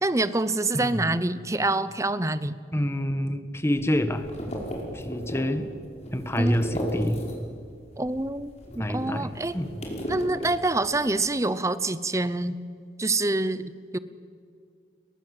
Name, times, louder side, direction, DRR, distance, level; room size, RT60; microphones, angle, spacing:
voice 1, 0.0-2.6 6.4-6.6 8.0-9.6 10.1-12.6 13.0-14.0, right 2 dB, 15° right, 14 dB, 0.8 m, -26 dB
voice 2, 0.7-1.0 2.7-4.3 4.9-5.7 6.1-7.2 8.8-9.7, equal, 15° left, 10 dB, 1.5 m, -27 dB
sound 1, 3.7-7.6 7.9-11.1, equal, 40° left, 5.4 m, -36 dB
29.0 x 22.5 x 7.8 m, 2.3 s
head